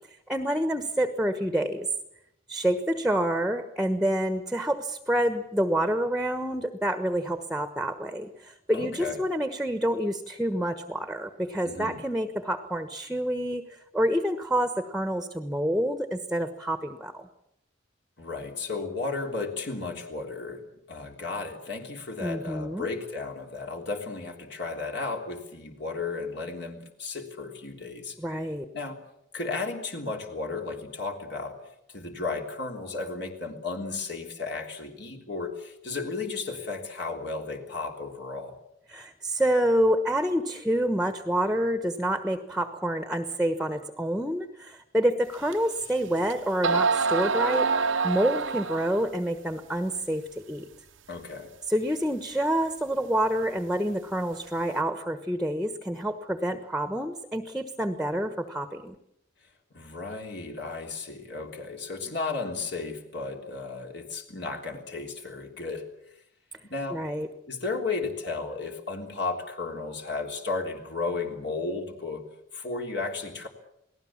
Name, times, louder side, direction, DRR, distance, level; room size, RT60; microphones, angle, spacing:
voice 1, 0.3-1.9 2.5-17.3 22.2-22.9 28.2-28.6 38.9-47.7 48.0-50.6 51.7-58.9 66.9-67.3, right 1 dB, ahead, 9 dB, 1.2 m, -28 dB
voice 2, 8.7-9.2 11.7-12.0 18.2-28.2 28.7-29.0 29.3-31.6 31.9-38.6 51.1-51.5 59.7-66.1 66.7-67.0 67.4-72.3 72.5-73.5, left 3 dB, 60° left, 2 dB, 3.5 m, -34 dB
sound 1, 45.5-45.6 46.3-46.4 46.6-49.1, right 4 dB, 85° right, 0.8 m, -26 dB
28.0 x 19.0 x 7.4 m, 0.79 s
head